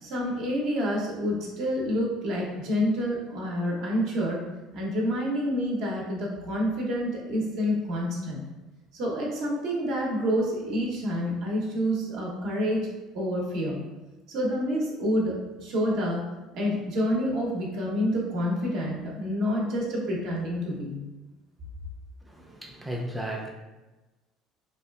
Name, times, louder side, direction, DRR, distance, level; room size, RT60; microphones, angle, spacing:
voice 1, 0.0-4.4 4.7-8.4 8.9-13.8 14.3-16.2 16.5-21.0, equal, 70° right, -3 dB, 0.7 m, -28 dB
voice 2, 22.2-23.5, right 1 dB, 5° right, -1 dB, 0.3 m, -35 dB
2.6 x 2.3 x 2.3 m, 1.1 s
supercardioid pair, 100°, 0 cm